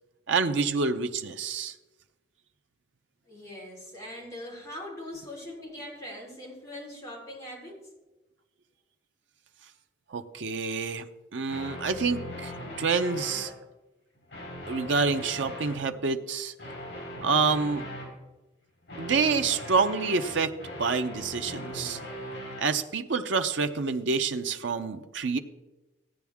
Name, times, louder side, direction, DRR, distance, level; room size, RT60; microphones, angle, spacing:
voice 1, 0.3-1.7 10.1-11.1 11.3-12.5 12.8-13.5 14.7-16.5 17.2-17.8 19.0-20.5 20.8-22.0 22.6-25.4, right 4 dB, 80° right, 7 dB, 0.7 m, -27 dB
voice 2, 3.3-7.8, left 1 dB, 15° left, -5 dB, 3.8 m, -41 dB
sound 1, 11.5-13.5 14.2-15.8 16.6-18.1 18.9-22.6, equal, 65° left, 4.4 m, -39 dB
15.5 x 9.3 x 3.6 m, 1.1 s
head